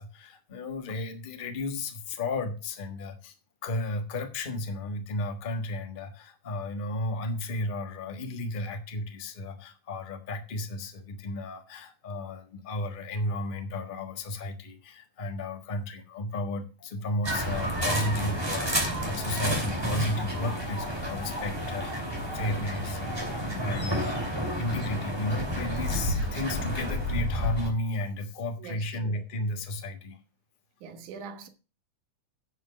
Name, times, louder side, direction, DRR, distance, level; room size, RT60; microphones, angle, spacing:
voice 1, 0.0-3.3 3.6-22.1 22.3-30.2, left 1 dB, 55° left, 0.5 m, -33 dB
sound 1, 17.2-27.7, equal, 10° right, 2.7 m, -30 dB
voice 2, 28.6-29.2 30.8-31.5, right 5 dB, 85° right, 2.7 m, -43 dB
11.0 x 6.1 x 6.2 m
omnidirectional pair, 3.4 m